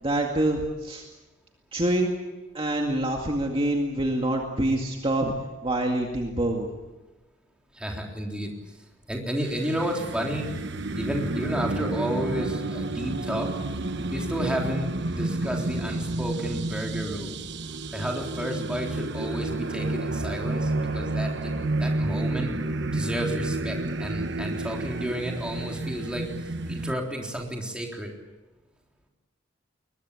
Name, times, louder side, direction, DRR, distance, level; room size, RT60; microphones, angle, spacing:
voice 1, 0.0-1.1 1.7-2.1 2.5-5.3 5.6-6.7, right 1 dB, 25° right, 1 dB, 2.1 m, -26 dB
voice 2, 7.7-8.5 9.1-10.5 11.0-13.5 14.1-17.4 17.9-21.5 21.8-22.5 22.9-26.3 26.7-28.1, right 1 dB, 5° right, 0 dB, 3.8 m, -31 dB
sound 1, 9.4-26.9, right 2 dB, 60° right, 1.2 m, -30 dB
22.0 x 21.5 x 8.5 m, 1.1 s
head